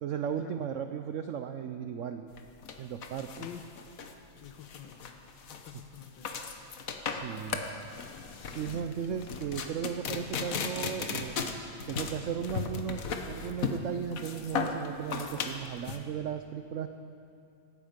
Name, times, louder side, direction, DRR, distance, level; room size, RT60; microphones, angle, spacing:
voice 1, 0.0-2.3 2.8-3.5 7.1-7.9 8.5-11.6 11.9-16.9, right 8 dB, 85° right, 8 dB, 0.6 m, -36 dB
sound 1, 2.3-16.0, left 6 dB, 55° left, 1.3 m, -36 dB
voice 2, 4.4-6.3, left 10 dB, 80° left, 9 dB, 1.5 m, -48 dB
18.0 x 14.0 x 5.2 m, 2.5 s
omnidirectional pair, 2.0 m